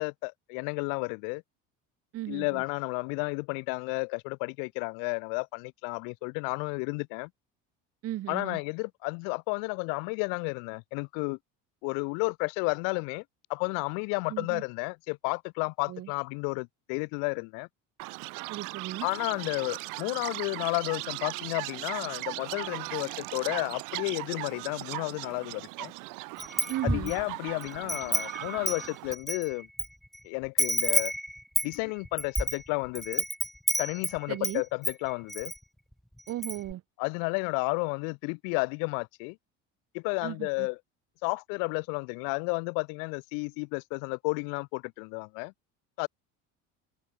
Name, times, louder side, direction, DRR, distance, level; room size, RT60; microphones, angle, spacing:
voice 1, 0.0-1.4 2.3-7.3 8.3-11.4 11.8-13.2 13.5-17.7 19.0-25.9 26.8-29.7 30.2-31.1 31.6-33.2 33.8-35.5 37.0-39.4 39.9-40.8 41.2-45.5 46.0-46.1, left 40 dB or more, 90° left, 1.0 m, -32 dB
voice 2, 2.1-2.6 8.0-8.6 14.3-14.6 15.9-16.1 18.5-19.1 26.7-27.1 34.3-34.6 36.3-36.8 40.2-40.7, right 14 dB, 50° right, 1.7 m, -36 dB
Chirp tweet, 18.0-29.1, right 30 dB, 75° right, 0.8 m, -38 dB
Wind chime, 26.4-27.2 27.6-29.9 30.1-30.2 30.6-34.6 34.8-35.6 35.9-36.0 36.3-36.7, equal, ahead, 0.4 m, -30 dB
cardioid pair, 145°, 32 cm